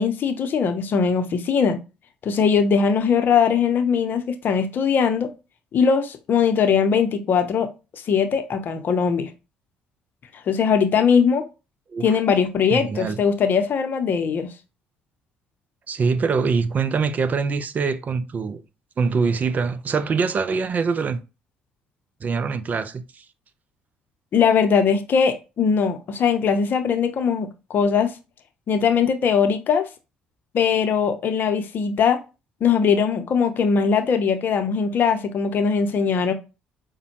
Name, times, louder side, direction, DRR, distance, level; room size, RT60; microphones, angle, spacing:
voice 1, 0.0-1.8 2.2-5.3 5.7-9.3 10.5-11.4 12.0-14.5 24.3-28.1 28.7-29.9 30.5-32.2 32.6-36.3, left 6 dB, 55° left, 0.7 m, -20 dB
voice 2, 12.7-13.2 15.9-18.6 19.0-21.2 22.2-23.3, right 5 dB, 45° right, 0.5 m, -24 dB
5.1 x 2.2 x 2.9 m
hypercardioid pair, 55°, 4 cm